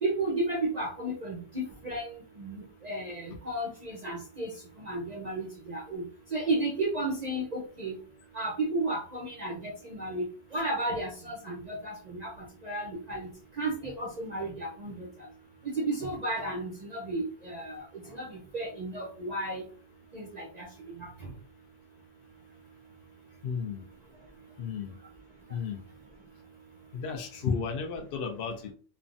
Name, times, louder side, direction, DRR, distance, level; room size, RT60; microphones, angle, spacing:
voice 1, 0.0-4.5 4.8-6.0 6.3-8.0 8.3-10.2 10.5-12.3 12.6-13.3 13.6-15.1 15.6-17.8 18.1-19.6 20.1-20.7 21.0-21.3, right 2 dB, 50° right, -1 dB, 0.5 m, -33 dB
voice 2, 23.4-23.9 24.6-25.0 25.5-25.8 26.9-28.7, left 6 dB, 65° left, 2 dB, 0.6 m, -33 dB
3.2 x 2.1 x 2.5 m, 0.41 s
omnidirectional pair, 1.4 m